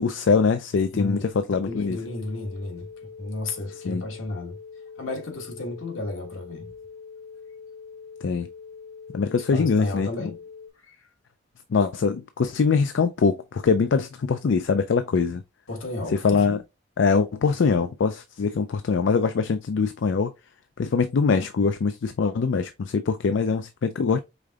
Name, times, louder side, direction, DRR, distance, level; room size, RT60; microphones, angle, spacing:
voice 1, 0.0-1.2 1.5-2.0 3.9-4.0 8.2-8.5 9.1-10.3 11.7-15.4 16.2-16.6 17.0-20.3 20.8-24.2, left 5 dB, 65° left, 0.4 m, -23 dB
voice 2, 0.9-1.3 1.6-4.6 5.0-6.7 9.5-10.4 10.8-11.1 15.7-16.6, left 2 dB, 80° left, 1.4 m, -33 dB
sound 1, 1.7-10.7, left 5 dB, 15° left, 0.5 m, -43 dB
5.1 x 3.7 x 2.3 m
head